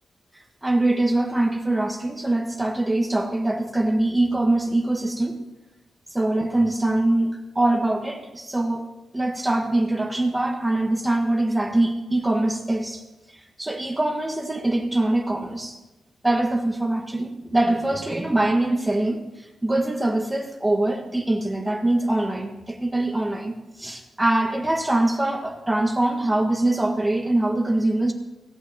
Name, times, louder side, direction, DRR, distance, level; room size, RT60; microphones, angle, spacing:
voice 1, 0.6-5.4 6.1-8.9 9.1-13.0 13.6-15.8 16.2-19.2 19.6-23.5 23.8-28.1, right 1 dB, 10° right, 3 dB, 1.5 m, -23 dB
17.0 x 6.4 x 8.9 m, 1.0 s
cardioid pair, 100°, 0 cm